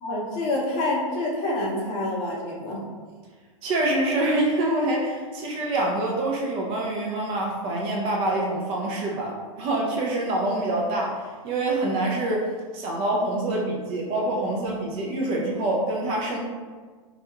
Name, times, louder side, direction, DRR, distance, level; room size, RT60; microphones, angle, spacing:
voice 1, 0.0-2.8, left 2 dB, 35° left, -3 dB, 0.7 m, -27 dB
voice 2, 3.6-12.5 12.7-16.4, right 2 dB, 30° right, -2 dB, 0.4 m, -26 dB
2.4 x 2.2 x 2.9 m, 1.5 s
hypercardioid pair, 130°, 18 cm